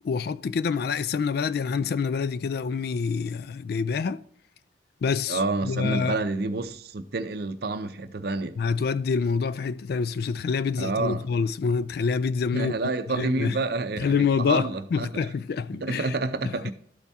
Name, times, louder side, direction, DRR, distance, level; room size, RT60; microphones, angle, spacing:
voice 1, 0.0-4.2 5.0-6.2 8.6-12.7 13.1-13.6 14.0-16.1 16.4-16.5, left 5 dB, 55° left, 0.3 m, -26 dB
voice 2, 5.3-8.6 10.8-11.3 12.5-15.1 15.8-16.7, right 3 dB, 55° right, 0.5 m, -29 dB
12.5 x 4.2 x 3.5 m
head